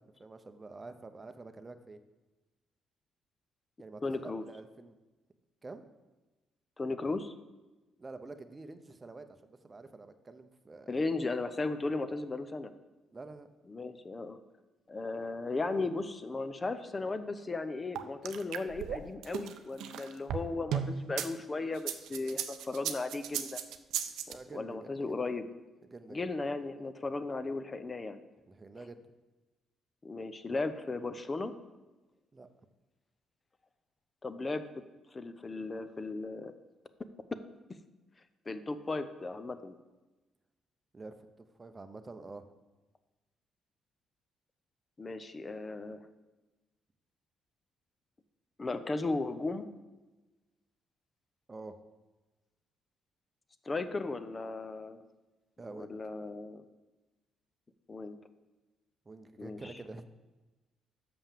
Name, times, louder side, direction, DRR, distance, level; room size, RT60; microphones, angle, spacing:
voice 1, 0.0-2.0 3.8-5.0 5.6-5.8 8.0-11.0 13.1-13.5 24.3-25.2 25.8-26.3 28.5-29.0 32.3-32.5 40.9-41.1 41.6-42.5 51.5-51.8 55.6-56.0 59.1-60.0, right 3 dB, 25° right, 9 dB, 0.7 m, -47 dB
voice 2, 4.0-4.4 6.8-7.3 10.9-12.7 13.7-14.4 14.9-23.6 24.5-25.5 26.1-28.2 30.0-31.5 34.2-34.6 35.1-36.5 37.3-37.4 38.5-39.7 45.0-46.0 48.6-49.7 53.6-55.0 55.7-56.6 57.9-58.2 59.4-59.6, left 3 dB, 30° left, 11 dB, 0.7 m, -36 dB
sound 1, 18.0-21.3 21.8-24.3, right 9 dB, 85° right, 0.5 m, -36 dB
6.9 x 5.5 x 7.4 m, 1.1 s
cardioid pair, 90°, 0 cm